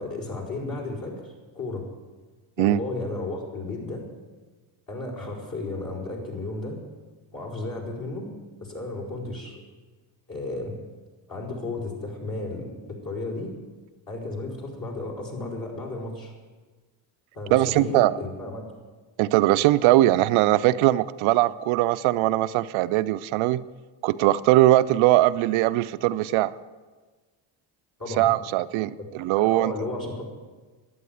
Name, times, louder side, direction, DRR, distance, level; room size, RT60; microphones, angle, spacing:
voice 1, 0.0-1.8 2.6-4.0 4.9-6.8 7.3-8.3 8.6-9.6 10.3-10.7 11.3-13.5 14.1-16.3 17.3-18.7 28.0-28.3 29.3-30.2, left 2 dB, 45° left, -2 dB, 5.0 m, -33 dB
voice 2, 17.5-18.1 19.2-23.6 24.0-26.5 28.2-29.7, right 16 dB, 75° right, 13 dB, 0.6 m, -20 dB
11.0 x 9.3 x 9.3 m, 1.3 s
supercardioid pair, 75°, 49 cm